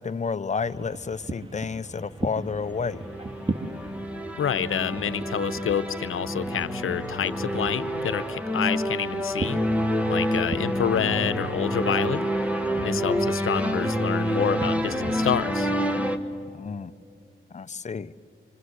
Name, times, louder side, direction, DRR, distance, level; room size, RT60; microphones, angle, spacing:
voice 1, 0.0-3.0 12.9-13.3 16.5-16.9 17.5-18.1, left 5 dB, 35° left, 0.7 m, -31 dB
sound 1, 0.6-15.5, right 2 dB, 25° right, 1.8 m, -39 dB
sound 2, 2.3-16.2, equal, 5° right, 1.6 m, -28 dB
voice 2, 4.4-9.6 10.1-12.3 12.8-15.7, left 8 dB, 80° left, 0.9 m, -28 dB
26.0 x 25.5 x 8.1 m
cardioid pair, 85°, 21 cm